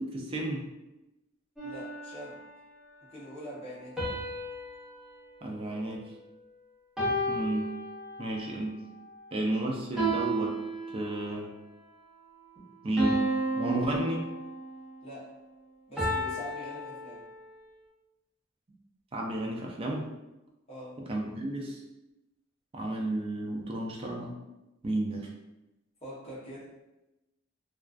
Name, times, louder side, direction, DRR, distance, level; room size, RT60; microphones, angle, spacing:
voice 1, 0.1-0.6 5.4-6.0 7.3-7.7 8.2-8.7 9.3-10.6 10.9-11.5 12.8-13.3 13.6-14.2 19.1-20.1 21.1-21.8 22.7-24.4 24.8-25.3, right 1 dB, 30° right, 0 dB, 0.4 m, -32 dB
voice 2, 1.6-2.4 3.1-4.3 15.0-15.3 15.9-17.2 20.7-21.0 26.0-26.8, equal, 35° left, -7 dB, 0.8 m, -44 dB
sound 1, 1.6-2.8 4.0-6.4 7.0-8.5 10.0-11.4 13.0-14.8 16.0-17.6, right 1 dB, ahead, 0.7 m, -34 dB
2.3 x 2.3 x 2.4 m, 0.96 s
head